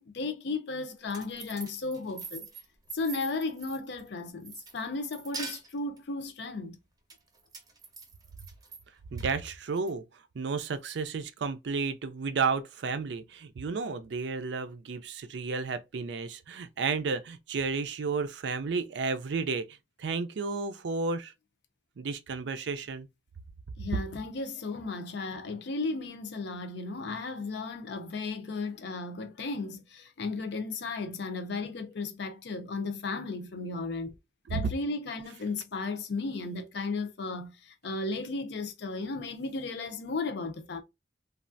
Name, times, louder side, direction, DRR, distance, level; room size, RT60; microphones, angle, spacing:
voice 1, 0.0-2.5 2.9-6.8 23.8-34.1 34.5-40.8, left 3 dB, 70° left, 0.6 m, -35 dB
sound 1, 0.9-4.1 4.4-6.0 7.1-8.8 9.2-9.9, right 4 dB, 20° right, 0.6 m, -43 dB
voice 2, 9.1-10.0 10.4-19.7 20.0-21.3 22.0-23.1 34.5-34.6, right 4 dB, 70° right, 0.4 m, -32 dB
3.2 x 2.3 x 2.5 m
head